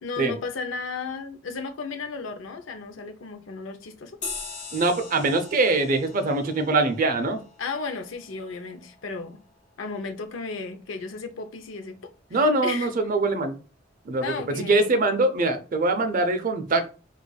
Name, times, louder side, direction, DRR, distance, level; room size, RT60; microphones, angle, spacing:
voice 1, 0.0-4.2 7.6-9.4 9.8-12.9 14.2-15.0, left 4 dB, 75° left, 0.5 m, -34 dB
sound 1, 4.2-9.1, left 4 dB, 40° left, 1.0 m, -41 dB
voice 2, 4.7-7.4 12.3-13.5 14.1-14.3 14.7-16.9, right 2 dB, 45° right, 0.5 m, -23 dB
4.7 x 2.4 x 2.3 m
head